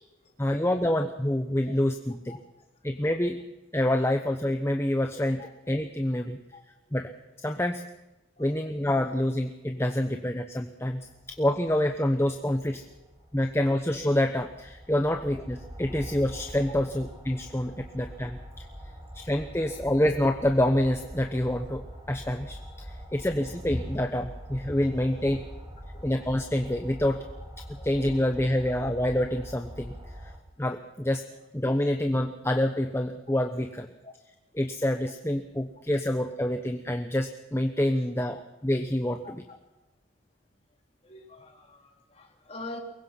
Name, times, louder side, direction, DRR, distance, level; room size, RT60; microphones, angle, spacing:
voice 1, 0.4-2.4 2.8-3.4 3.7-6.4 6.9-7.1 7.4-7.8 8.4-11.1 11.4-12.8 13.3-18.6 19.1-21.8 22.1-25.4 26.0-27.2 27.8-29.9 30.2-30.3 30.6-31.2 31.5-33.9 34.5-39.4, left 1 dB, 15° left, 5 dB, 1.0 m, -27 dB
sound 1, 10.9-30.4, equal, 20° right, 2.9 m, -43 dB
voice 2, 41.0-42.8, left 2 dB, 30° left, 2 dB, 3.5 m, -44 dB
23.5 x 21.5 x 5.9 m, 0.96 s
head